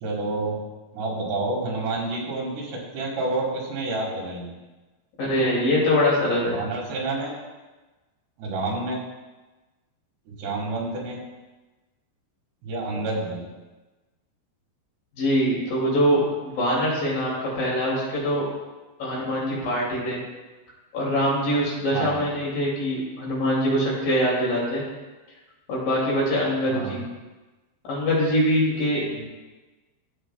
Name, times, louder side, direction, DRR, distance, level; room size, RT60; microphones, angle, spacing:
voice 1, 0.0-0.6 0.9-4.5 6.5-7.4 8.4-9.0 10.3-11.2 12.6-13.5 21.9-22.3 26.7-27.0 29.2-29.3, right 2 dB, 75° right, -2 dB, 3.9 m, -29 dB
voice 2, 5.2-6.6 15.2-16.2 16.6-18.5 19.0-20.2 20.9-24.8 25.7-27.0 27.9-29.0, equal, 60° left, -5 dB, 3.9 m, -23 dB
14.0 x 7.8 x 2.3 m, 1.2 s
omnidirectional pair, 4.9 m